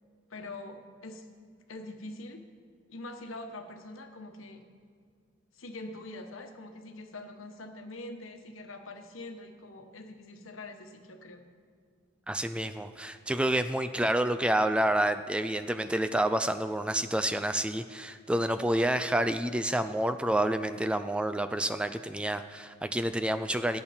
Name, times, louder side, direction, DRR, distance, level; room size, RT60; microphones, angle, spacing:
voice 1, 0.3-1.3 1.7-2.4 2.9-4.7 5.5-11.4, left 2 dB, 85° left, 5 dB, 1.2 m, -44 dB
voice 2, 12.3-23.8, right 1 dB, 5° right, 10 dB, 0.3 m, -28 dB
16.5 x 8.7 x 4.3 m, 2.2 s
head